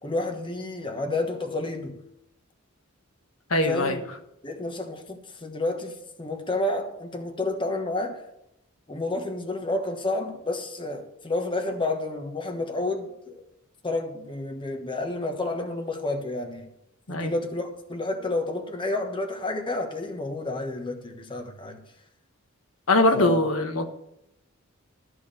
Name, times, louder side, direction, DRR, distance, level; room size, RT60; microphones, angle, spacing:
voice 1, 0.0-2.0 3.6-4.0 4.4-8.2 8.9-13.4 13.8-16.7 17.1-21.8 23.1-23.4, left 2 dB, 25° left, 1.3 m, -30 dB
voice 2, 3.5-3.9 17.1-17.3 22.9-23.9, left 2 dB, 85° left, 1.2 m, -22 dB
13.5 x 4.8 x 8.0 m
head